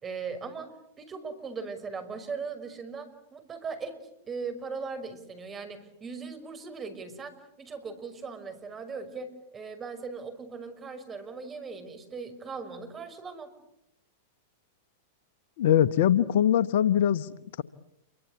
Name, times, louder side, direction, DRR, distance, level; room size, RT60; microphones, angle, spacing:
voice 1, 0.0-4.0 4.3-13.5, right 4 dB, 25° right, 5.9 m, -39 dB
voice 2, 15.6-17.6, left 10 dB, 60° left, 1.0 m, -23 dB
29.0 x 24.0 x 8.3 m
hypercardioid pair, 100°, 0 cm